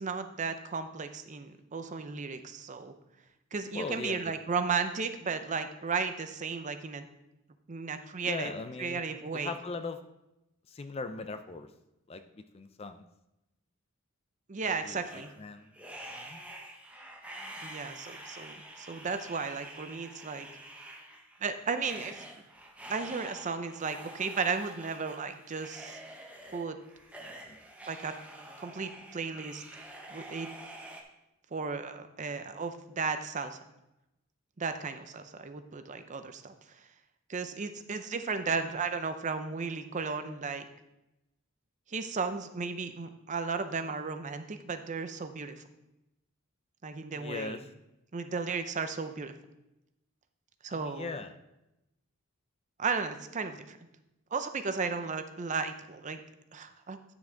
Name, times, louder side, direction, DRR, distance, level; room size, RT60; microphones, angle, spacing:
voice 1, 0.0-2.9 3.5-7.1 7.7-8.5 8.8-9.5 14.5-15.3 17.6-20.5 21.4-22.2 22.9-26.0 26.5-26.8 27.9-28.1 28.6-29.6 30.1-30.5 31.5-33.6 34.6-36.5 37.3-40.7 41.9-45.5 46.8-47.6 48.1-49.3 50.6-51.1 52.8-53.8 54.3-56.2 56.5-57.0, right 5 dB, 35° right, 9 dB, 0.5 m, -34 dB
voice 2, 3.7-4.3 8.2-9.0 9.3-10.0 10.7-11.7 12.1-13.0 14.6-15.0 15.4-15.7 16.2-16.4 27.5-27.6 47.1-47.6 50.7-51.3, left 3 dB, 25° left, 9 dB, 0.4 m, -39 dB
sound 1, 15.0-31.0, right 1 dB, 5° right, 0.9 m, -47 dB
9.8 x 6.0 x 3.8 m, 0.91 s
head